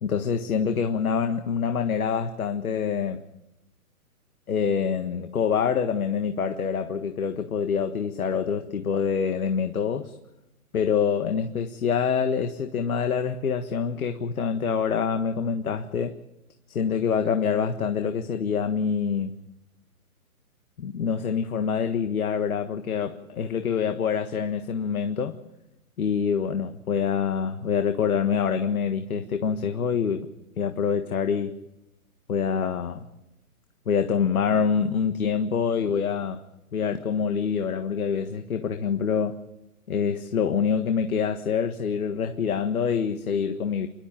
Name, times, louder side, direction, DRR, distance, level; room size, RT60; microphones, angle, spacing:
voice 1, 0.0-3.2 4.5-10.2 10.7-16.2 16.7-19.3 20.8-25.4 26.0-30.3 30.6-31.5 32.3-33.1 33.8-36.4 36.7-39.4 39.9-43.9, left 6 dB, 70° left, 7 dB, 1.6 m, -26 dB
29.0 x 12.5 x 8.8 m, 0.92 s
hypercardioid pair, 150°, 45 cm